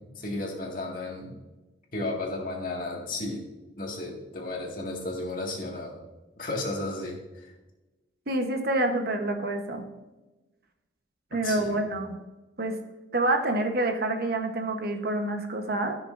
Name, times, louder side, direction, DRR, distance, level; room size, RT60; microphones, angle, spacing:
voice 1, 0.0-1.4 1.9-3.4 3.8-6.0 6.4-7.5 11.4-11.8, left 2 dB, 45° left, -1 dB, 1.9 m, -34 dB
voice 2, 8.3-9.8 11.3-12.2 12.6-12.8 13.1-16.0, right 2 dB, 55° right, 4 dB, 1.0 m, -27 dB
14.5 x 6.4 x 2.6 m, 1.1 s
head